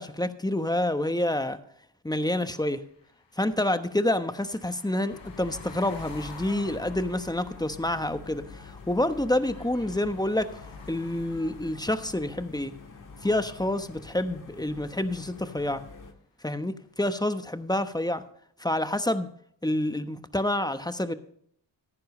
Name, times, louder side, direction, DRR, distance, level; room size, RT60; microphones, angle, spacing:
voice 1, 0.0-1.6 2.0-2.8 3.4-10.5 10.9-12.7 13.2-15.8 16.4-18.2 18.6-19.3 19.6-21.1, left 1 dB, 10° left, 10 dB, 1.1 m, -28 dB
sound 1, 2.4-14.3, left 4 dB, 80° left, 3.6 m, -52 dB
sound 2, 5.1-16.1, left 4 dB, 45° left, 1.9 m, -46 dB
14.5 x 10.5 x 3.2 m, 0.65 s
cardioid pair, 60°, 44 cm